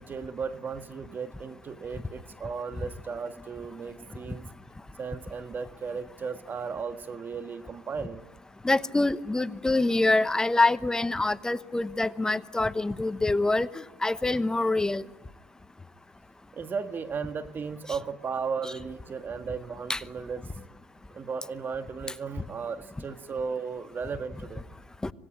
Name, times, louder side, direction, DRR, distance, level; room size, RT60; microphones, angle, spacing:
voice 1, 0.0-4.5 5.0-8.2 16.5-20.5 21.1-24.6, right 5 dB, 35° right, 9 dB, 1.6 m, -35 dB
voice 2, 8.6-15.0 19.9-20.0 25.0-25.1, left 2 dB, 10° left, 15 dB, 1.0 m, -25 dB
26.0 x 18.0 x 9.9 m, 1.2 s
supercardioid pair, 95°, 6 cm